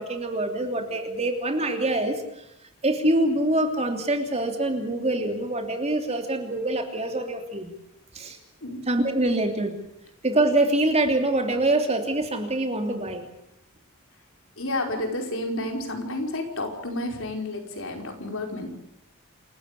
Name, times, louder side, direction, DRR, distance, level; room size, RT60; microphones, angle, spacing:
voice 1, 0.0-2.2 2.8-7.7 8.1-8.4 8.9-9.7 10.2-13.2, right 2 dB, 30° right, 5 dB, 3.0 m, -25 dB
voice 2, 14.6-18.7, left 1 dB, 60° left, 3 dB, 5.1 m, -30 dB
28.5 x 14.5 x 8.4 m, 0.84 s
head